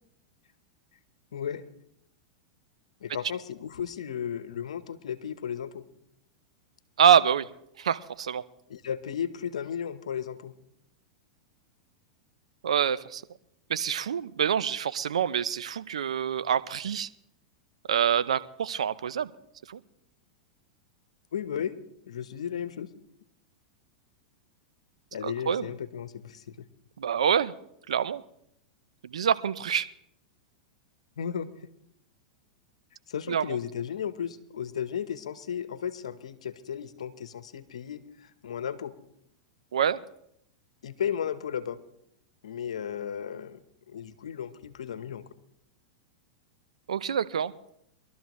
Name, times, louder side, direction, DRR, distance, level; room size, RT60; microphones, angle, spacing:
voice 1, 1.3-1.6 3.0-5.8 8.7-10.5 21.3-21.7 22.1-22.9 25.1-26.6 31.2-31.5 33.1-38.9 40.8-41.8 42.4-45.2, left 8 dB, 85° left, 13 dB, 1.0 m, -34 dB
voice 2, 7.0-7.5 7.8-8.4 12.6-13.2 13.7-17.1 17.9-19.3 19.7-19.8 25.2-25.6 27.0-27.5 27.9-28.2 29.0-29.9 33.3-33.6 39.7-40.0 46.9-47.5, right 8 dB, 85° right, 14 dB, 0.6 m, -26 dB
22.5 x 12.5 x 3.1 m, 0.74 s
hypercardioid pair, 115°, 3 cm